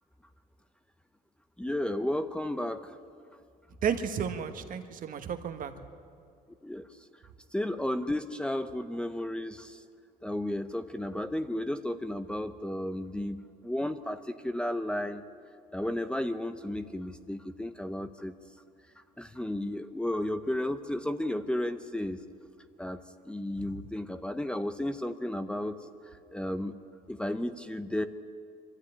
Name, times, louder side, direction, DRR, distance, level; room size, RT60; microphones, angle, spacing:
voice 1, 1.6-2.9 6.6-6.9 7.5-9.8 10.2-15.2 15.7-18.3 19.2-22.2 22.8-23.0 23.3-25.8 26.3-26.8 27.1-28.1, left 1 dB, 5° left, 9 dB, 0.7 m, -33 dB
voice 2, 3.8-5.7, right 7 dB, 55° right, 7 dB, 1.5 m, -32 dB
23.5 x 13.0 x 9.9 m, 2.3 s
cardioid pair, 110°, 17 cm